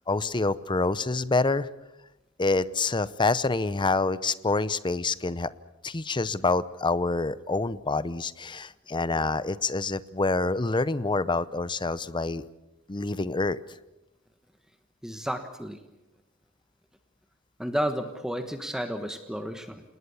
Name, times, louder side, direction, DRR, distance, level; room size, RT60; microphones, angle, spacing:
voice 1, 0.1-1.7 2.4-5.5 5.8-12.4 12.9-13.6, left 3 dB, 20° left, 16 dB, 0.7 m, -27 dB
voice 2, 15.0-15.8 17.6-19.8, equal, 5° right, 7 dB, 1.2 m, -32 dB
28.5 x 19.5 x 7.0 m, 0.97 s
head